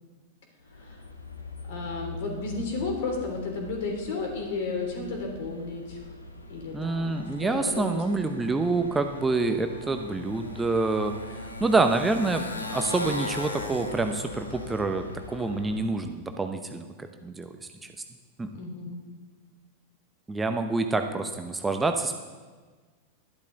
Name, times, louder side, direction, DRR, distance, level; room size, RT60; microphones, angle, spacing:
Motorcycle, 0.7-16.0, left 2 dB, 80° left, 1.2 m, -40 dB
voice 1, 1.7-6.0 6.5-8.0 18.5-19.0, left 3 dB, 55° left, 2 dB, 3.2 m, -33 dB
voice 2, 6.7-11.1 11.6-16.9 17.2-17.5 18.4-18.5 20.3-22.1, right 3 dB, 10° right, 6 dB, 0.8 m, -27 dB
12.0 x 11.5 x 4.0 m, 1.4 s
figure-of-eight pair, 90°, 0 cm